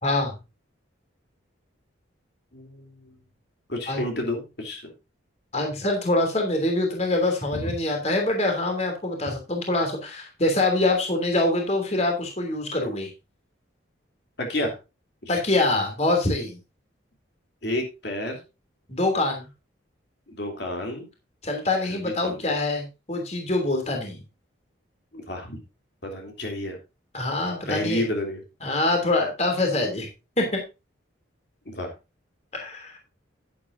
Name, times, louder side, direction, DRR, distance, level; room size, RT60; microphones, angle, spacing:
voice 1, 0.0-0.3 3.9-4.0 5.5-13.1 15.3-16.6 18.9-19.5 21.4-24.2 27.1-28.0 28.6-30.1 30.4-30.6 32.5-33.0, left 2 dB, 35° left, 3 dB, 3.0 m, -25 dB
voice 2, 2.5-3.1 3.7-4.9 7.5-7.6 14.4-14.7 15.2-15.4 17.6-18.4 20.3-21.1 21.9-22.4 25.1-25.6 26.0-26.8 27.7-28.4 31.6-31.9, left 1 dB, 55° left, 2 dB, 3.1 m, -30 dB
11.0 x 10.5 x 2.7 m, 0.27 s
head